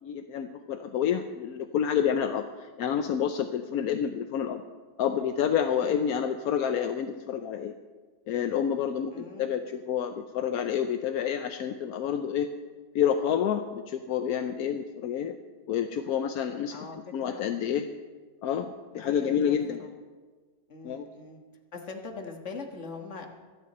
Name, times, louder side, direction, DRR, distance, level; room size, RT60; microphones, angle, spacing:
voice 1, 0.0-4.6 5.0-7.7 8.3-12.5 12.9-15.3 15.7-17.9 18.4-19.9 20.8-21.0, left 8 dB, 65° left, 7 dB, 1.0 m, -29 dB
voice 2, 5.8-6.1 9.1-9.6 16.7-17.0 17.2-17.4 19.0-19.5 19.8-19.9 20.7-21.4 21.7-23.3, left 4 dB, 40° left, 3 dB, 1.6 m, -41 dB
25.0 x 9.3 x 4.2 m, 1.4 s
omnidirectional pair, 2.0 m